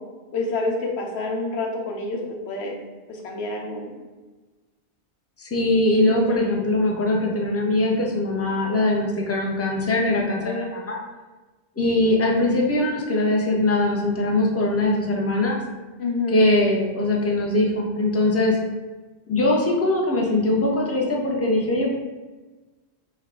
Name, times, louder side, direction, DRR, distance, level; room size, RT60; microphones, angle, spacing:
voice 1, 0.3-2.2 2.5-2.8 3.1-3.9 6.1-6.6 10.4-10.7 16.0-16.3, left 3 dB, 75° left, 0 dB, 1.0 m, -28 dB
voice 2, 5.4-11.0 11.8-15.6 16.3-18.6 19.3-21.9, left 2 dB, 20° left, -1 dB, 0.4 m, -21 dB
4.4 x 2.2 x 3.7 m, 1.2 s
omnidirectional pair, 1.1 m